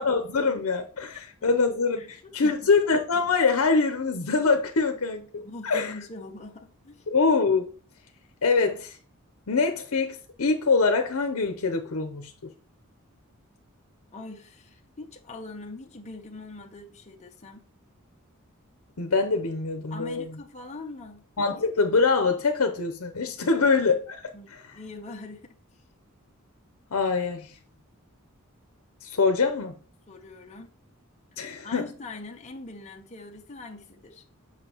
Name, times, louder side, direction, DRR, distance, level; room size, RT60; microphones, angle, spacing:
voice 1, 0.0-5.9 7.1-7.7 8.4-9.0 9.5-12.5 19.0-20.3 21.4-24.2 26.9-27.6 29.0-29.7 31.4-31.9, left 4 dB, 75° left, 0.7 m, -24 dB
voice 2, 2.4-2.7 5.4-7.1 14.1-17.6 19.9-21.2 24.3-25.6 30.1-30.7 31.6-34.2, left 2 dB, 35° left, 0.7 m, -42 dB
7.3 x 5.7 x 2.9 m
head